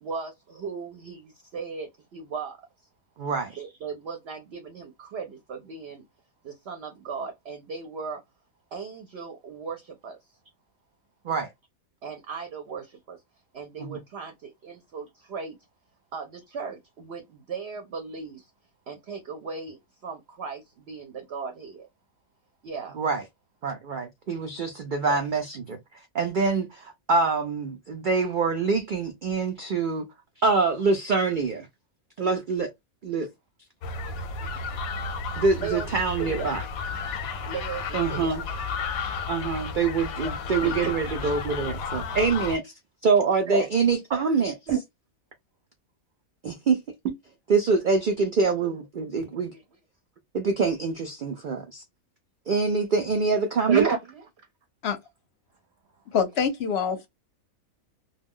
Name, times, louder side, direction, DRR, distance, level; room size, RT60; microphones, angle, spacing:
voice 1, 0.0-2.6 3.5-6.0 6.4-8.2 8.7-10.2 12.0-13.2 13.5-15.6 16.1-18.5 18.9-21.9 22.6-23.0 25.0-25.2 35.5-35.9 36.2-36.6 37.5-38.4 40.2-40.9 43.5-43.7 44.7-44.8 49.5-49.6 53.7-54.2, right 6 dB, 60° right, 0.8 m, -35 dB
voice 2, 3.2-3.5 11.2-11.5 13.8-14.0 22.9-23.2 23.6-25.8 26.1-30.1 30.4-31.7 32.2-32.7 33.0-33.3 35.4-36.6 37.9-38.4 39.2-42.7 43.0-44.6 46.4-46.8 47.5-49.5 50.3-51.8 52.5-53.9, right 4 dB, 80° right, 0.4 m, -25 dB
sound 1, 33.8-42.6, left 4 dB, 90° left, 1.0 m, -33 dB
voice 3, 56.1-57.1, left 6 dB, 60° left, 0.8 m, -25 dB
2.3 x 2.2 x 3.5 m
omnidirectional pair, 1.5 m